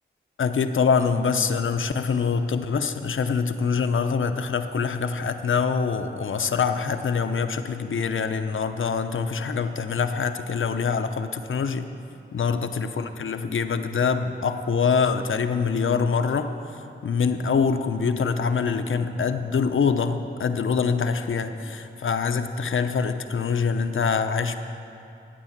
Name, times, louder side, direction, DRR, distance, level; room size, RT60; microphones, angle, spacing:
voice 1, 0.4-11.9 12.3-16.5 17.0-24.6, left 5 dB, 75° left, 8 dB, 0.8 m, -24 dB
12.5 x 9.4 x 7.4 m, 2.8 s
wide cardioid pair, 70°, 20 cm